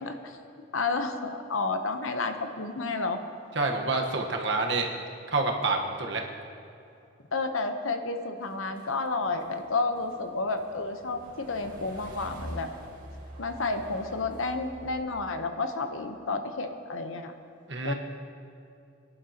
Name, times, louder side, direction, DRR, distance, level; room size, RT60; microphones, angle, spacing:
voice 1, 0.0-0.4 0.7-3.2 7.3-12.7 13.4-17.3 17.8-17.9, left 3 dB, 90° left, 7 dB, 1.0 m, -31 dB
voice 2, 3.5-4.9 5.3-6.2 17.7-17.9, right 3 dB, 65° right, 1 dB, 1.3 m, -27 dB
sound 1, 8.4-15.0, equal, 45° right, 1.9 m, -46 dB
23.0 x 11.0 x 3.0 m, 2.6 s
head